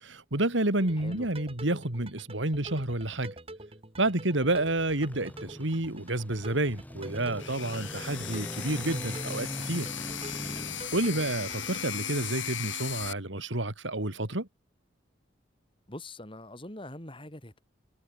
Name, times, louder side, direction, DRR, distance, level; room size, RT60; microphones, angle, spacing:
voice 1, 0.0-3.3 4.0-9.9 10.2-10.6 10.9-14.5, right 2 dB, 80° right, 3.1 m, -30 dB
sound 1, 0.8-11.8, right 2 dB, 30° right, 5.9 m, -47 dB
sound 2, 4.3-12.7, equal, 10° left, 2.7 m, -42 dB
sound 3, 7.4-13.1, left 10 dB, 85° left, 6.8 m, -37 dB
voice 2, 10.4-10.9 15.9-17.6, left 1 dB, 30° left, 6.4 m, -44 dB
head